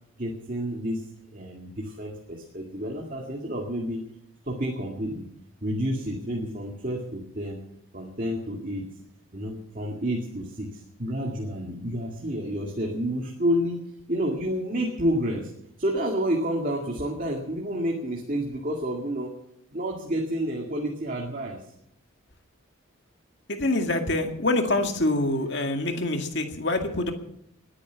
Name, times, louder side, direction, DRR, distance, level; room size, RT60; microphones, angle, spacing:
voice 1, 0.2-1.0 1.3-4.0 4.4-5.3 5.6-7.6 7.9-8.8 9.3-13.8 14.1-15.5 15.8-19.3 19.7-21.7, equal, 40° right, 0 dB, 2.1 m, -29 dB
voice 2, 23.5-27.1, left 2 dB, 55° left, 5 dB, 2.1 m, -25 dB
20.5 x 10.0 x 7.0 m, 0.75 s
head